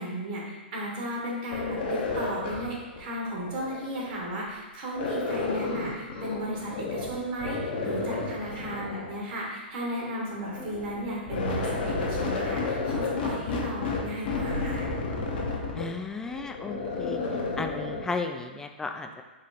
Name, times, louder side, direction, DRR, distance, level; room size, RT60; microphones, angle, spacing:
voice 1, 0.0-14.9, right 1 dB, 55° right, -3 dB, 1.4 m, -35 dB
sound 1, 1.5-4.3 4.9-7.1 7.4-9.2 10.2-18.0, left 3 dB, 60° left, 0.9 m, -32 dB
voice 2, 15.8-17.2 17.6-19.2, left 3 dB, 10° left, 5 dB, 0.3 m, -34 dB
4.7 x 2.3 x 4.1 m, 1.2 s
hypercardioid pair, 125°, 6 cm